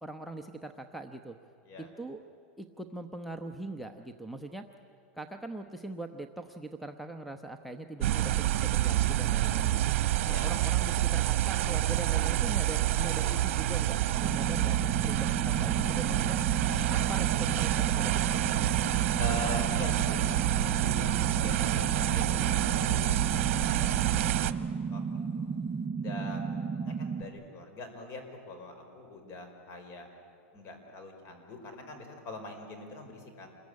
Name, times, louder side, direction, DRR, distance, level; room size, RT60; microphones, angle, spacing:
voice 1, 0.0-1.4 1.8-2.2 2.6-4.7 5.1-9.9 10.2-14.8 15.0-16.4 16.9-18.4, right 2 dB, ahead, 8 dB, 0.9 m, -41 dB
sound 1, 8.0-24.5, right 14 dB, 70° right, 1.1 m, -28 dB
sound 2, 14.2-27.2, right 5 dB, 25° right, 1.1 m, -34 dB
voice 2, 19.2-24.6 24.9-25.5 26.0-30.1 30.5-33.5, left 2 dB, 40° left, 5 dB, 5.2 m, -43 dB
sound 3, 20.7-25.9, left 6 dB, 65° left, 2.9 m, -53 dB
28.0 x 21.5 x 9.7 m, 2.6 s
supercardioid pair, 145°, 7 cm